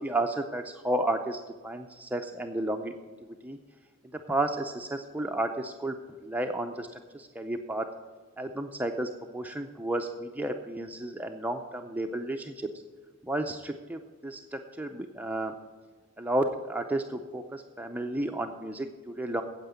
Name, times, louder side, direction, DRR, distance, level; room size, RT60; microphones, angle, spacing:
voice 1, 0.0-2.9 3.4-3.6 4.1-5.9 6.2-7.9 8.4-12.7 13.2-15.5 16.2-19.4, right 1 dB, 10° right, 4 dB, 0.5 m, -32 dB
9.3 x 7.9 x 8.2 m, 1.4 s
head